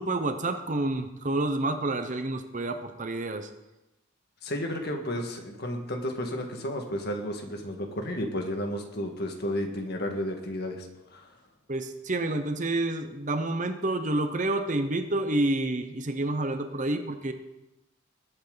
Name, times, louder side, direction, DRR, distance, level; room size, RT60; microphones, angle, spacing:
voice 1, 0.0-3.5 11.7-17.3, right 2 dB, 35° right, 8 dB, 0.9 m, -29 dB
voice 2, 4.4-11.3, equal, 50° left, 3 dB, 1.8 m, -32 dB
20.5 x 8.5 x 4.0 m, 0.95 s
head